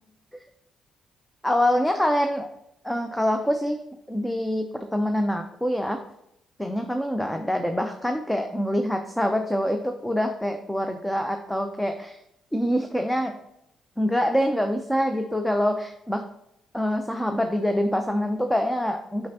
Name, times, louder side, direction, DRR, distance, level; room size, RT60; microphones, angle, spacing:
voice 1, 1.4-2.5 2.8-3.8 4.1-6.0 6.6-12.2 12.5-13.4 14.0-16.2 16.7-19.3, equal, 5° left, 5 dB, 0.7 m, -25 dB
6.2 x 6.0 x 2.8 m, 0.79 s
hypercardioid pair, 50°, 0 cm